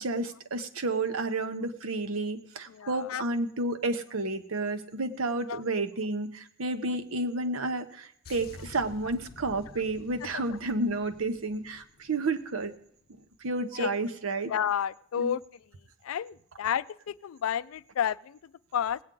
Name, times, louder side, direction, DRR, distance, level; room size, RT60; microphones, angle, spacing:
voice 1, 0.0-12.7 13.4-14.5 15.2-15.3, right 2 dB, 80° right, 7 dB, 0.9 m, -31 dB
voice 2, 2.7-3.2 5.5-5.6 10.3-10.4 13.7-13.9 14.5-15.4 16.0-19.0, left 8 dB, 80° left, 18 dB, 0.4 m, -31 dB
sound 1, 8.2-12.8 13.1-13.4, left 3 dB, 45° left, 0.7 m, -50 dB
19.0 x 8.7 x 3.8 m, 0.69 s
head